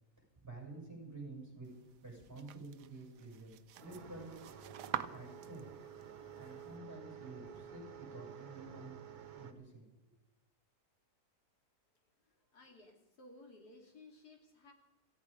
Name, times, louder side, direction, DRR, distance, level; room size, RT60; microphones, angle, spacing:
voice 1, 0.4-1.7 2.0-3.5 3.8-4.3 5.1-5.6 6.3-9.0 9.3-9.8, right 2 dB, 10° right, -1 dB, 6.7 m, -50 dB
sound 1, 1.6-6.8, right 11 dB, 90° right, 1.3 m, -47 dB
sound 2, 3.8-9.5, right 8 dB, 65° right, 1.8 m, -51 dB
voice 2, 12.5-14.7, left 2 dB, 70° left, 2 dB, 3.3 m, -57 dB
17.5 x 15.5 x 5.2 m, 0.97 s
omnidirectional pair, 1.7 m